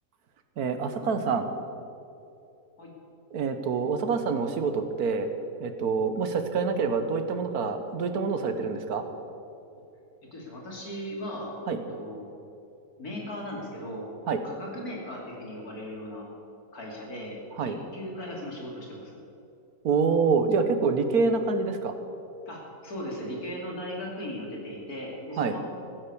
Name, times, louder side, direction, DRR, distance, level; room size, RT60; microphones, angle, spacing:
voice 1, 0.6-1.5 3.3-5.3 5.6-9.1 11.7-11.8 14.3-14.4 17.6-17.8 19.8-21.9 25.4-25.5, right 5 dB, 65° right, 8 dB, 1.5 m, -26 dB
voice 2, 10.3-11.5 11.9-12.2 13.0-14.1 14.4-16.3 16.7-17.4 17.7-19.2 22.5-25.6, equal, 60° left, -2 dB, 3.3 m, -37 dB
15.0 x 10.5 x 7.0 m, 2.6 s
omnidirectional pair, 1.8 m